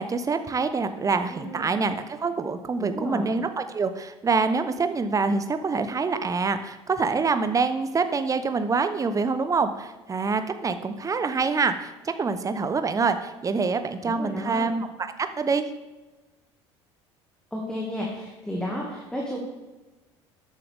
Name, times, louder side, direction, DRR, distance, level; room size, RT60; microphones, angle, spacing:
voice 1, 0.0-15.1 15.4-15.6, right 4 dB, 20° right, 10 dB, 0.9 m, -26 dB
voice 2, 1.3-1.7 2.8-3.3 14.0-14.7 17.5-19.4, equal, 5° left, -2 dB, 2.2 m, -32 dB
14.0 x 8.9 x 3.6 m, 1.2 s
figure-of-eight pair, 60°, 15 cm